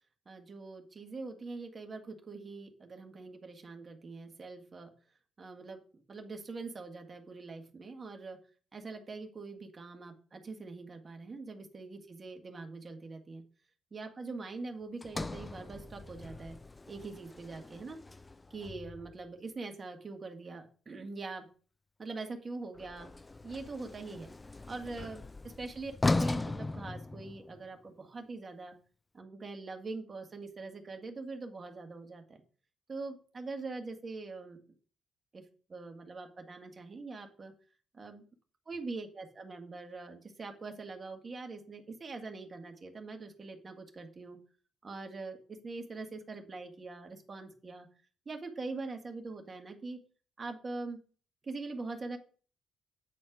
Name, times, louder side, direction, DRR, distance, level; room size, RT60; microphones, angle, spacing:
voice 1, 0.3-4.9 5.4-8.4 8.7-13.4 13.9-16.6 16.9-18.0 18.5-21.5 22.0-23.1 23.4-24.3 24.7-25.9 26.2-28.8 29.1-32.4 32.9-34.6 35.3-37.5 37.9-38.2 38.7-44.4 44.8-47.9 48.3-50.0 50.4-51.0 51.4-52.2, right 3 dB, 35° right, 4 dB, 1.9 m, -43 dB
Sliding door, 15.0-19.3 22.7-27.7, left 2 dB, 20° left, 0.3 m, -38 dB
9.2 x 4.4 x 6.1 m, 0.40 s
cardioid pair, 90°, 0 cm